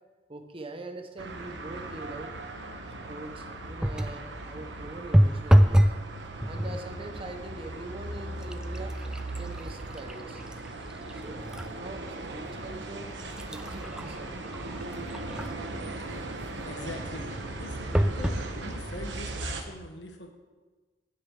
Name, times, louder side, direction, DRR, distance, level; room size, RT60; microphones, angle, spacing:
voice 1, 0.3-2.3 3.1-5.8 6.4-9.0 9.4-10.4 11.1-11.5 11.8-13.1 13.5-14.6, right 2 dB, 30° right, 6 dB, 0.8 m, -43 dB
sound 1, 1.2-19.6, right 2 dB, 75° right, 1.1 m, -38 dB
sound 2, 3.8-4.2 5.1-6.0 6.4-6.9 7.6-7.8 8.2-11.7 12.2-12.3 13.0-15.7 17.9-18.5 19.1-19.2 19.5-19.6, equal, 5° right, 0.3 m, -26 dB
voice 2, 16.7-20.3, left 1 dB, 75° left, 4 dB, 1.3 m, -43 dB
7.7 x 6.7 x 7.6 m, 1.3 s
head